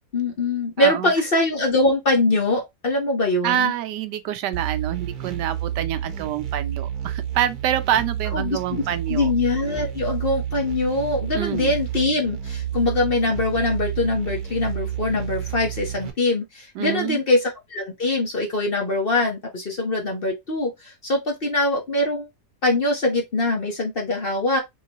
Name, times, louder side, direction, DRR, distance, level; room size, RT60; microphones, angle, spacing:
voice 1, 0.1-3.7 8.3-8.8 9.1-22.3 22.6-24.6, left 2 dB, 40° left, 1.1 m, -23 dB
voice 2, 0.8-1.1 3.4-9.3 11.3-11.7 16.8-17.2, right 11 dB, 85° right, 1.3 m, -26 dB
sound 1, 4.5-16.1, right 10 dB, 70° right, 1.4 m, -30 dB
3.8 x 3.8 x 2.9 m
omnidirectional pair, 1.8 m